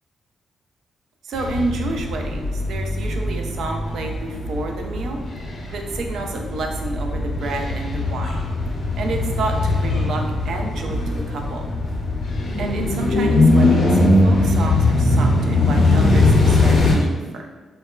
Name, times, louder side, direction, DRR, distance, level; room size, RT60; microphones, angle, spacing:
voice 1, 1.2-5.2 5.7-8.4 9.0-11.7 12.6-17.5, right 3 dB, 80° right, 3 dB, 0.3 m, -29 dB
sound 1, 1.3-16.9, left 2 dB, 55° left, 0.5 m, -20 dB
2.8 x 2.2 x 2.2 m, 1.4 s
cardioid pair, 130°, 0 cm